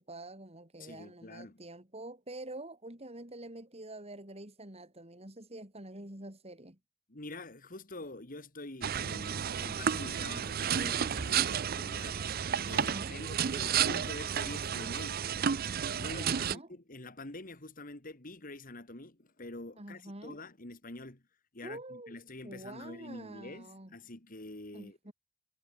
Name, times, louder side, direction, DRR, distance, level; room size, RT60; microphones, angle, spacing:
voice 1, 0.0-6.8 12.7-13.1 15.4-16.7 19.8-20.4 21.6-22.2 22.4-23.9 24.7-25.1, right 1 dB, 35° right, 4.6 m, -47 dB
voice 2, 0.8-1.6 7.1-12.2 12.6-15.4 15.9-21.2 21.5-25.1, left 2 dB, 45° left, 2.8 m, -46 dB
sound 1, 8.8-16.5, right 8 dB, 50° right, 0.5 m, -32 dB
head